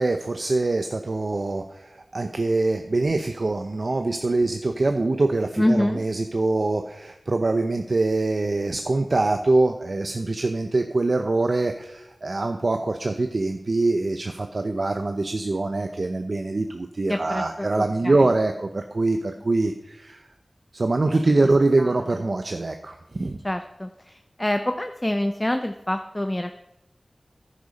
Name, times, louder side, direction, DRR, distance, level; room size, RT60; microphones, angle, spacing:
voice 1, 0.0-20.2 20.7-23.4, right 2 dB, 60° right, 7 dB, 0.7 m, -24 dB
voice 2, 5.6-6.0 17.1-18.3 21.8-22.0 23.4-26.6, left 1 dB, 20° left, 7 dB, 0.6 m, -26 dB
10.5 x 10.5 x 4.2 m, 0.90 s
wide cardioid pair, 55°, 0 cm